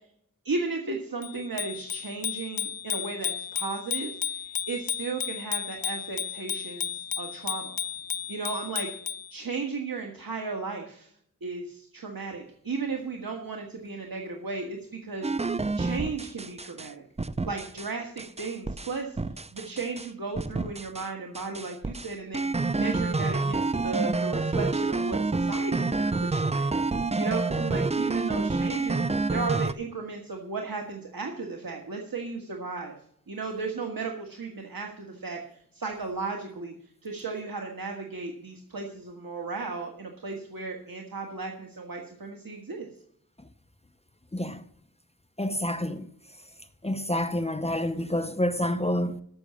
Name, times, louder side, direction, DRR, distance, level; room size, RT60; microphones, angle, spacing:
voice 1, 0.4-7.8 8.3-8.9 9.3-11.1 11.4-15.3 15.8-17.0 17.4-19.2 19.5-22.4 22.7-26.7 27.2-33.0 33.3-36.7 37.0-42.9, right 4 dB, 75° right, 1.6 m, -35 dB
Bicycle bell, 1.2-9.3, left 9 dB, 75° left, 0.5 m, -33 dB
sound 1, 15.2-16.9 17.2-17.9 18.2-20.1 20.4-21.1 21.3-29.7, right 3 dB, 20° right, 0.5 m, -28 dB
voice 2, 44.3-44.6 45.4-46.1 46.8-49.2, left 1 dB, 20° left, 0.8 m, -28 dB
13.5 x 6.2 x 7.1 m
wide cardioid pair, 70°, 35 cm